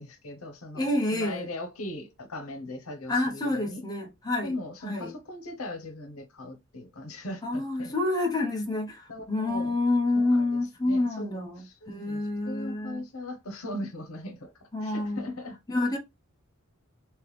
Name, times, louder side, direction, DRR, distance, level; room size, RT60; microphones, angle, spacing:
voice 1, 0.0-3.8 4.4-7.9 9.1-9.7 10.1-10.6 10.8-15.6, left 1 dB, 85° left, 0.9 m, -39 dB
voice 2, 0.7-1.5 3.1-4.5 4.8-5.1 7.4-13.1 14.7-15.2 15.7-16.0, left 2 dB, 20° left, 0.8 m, -28 dB
3.3 x 2.9 x 3.2 m
head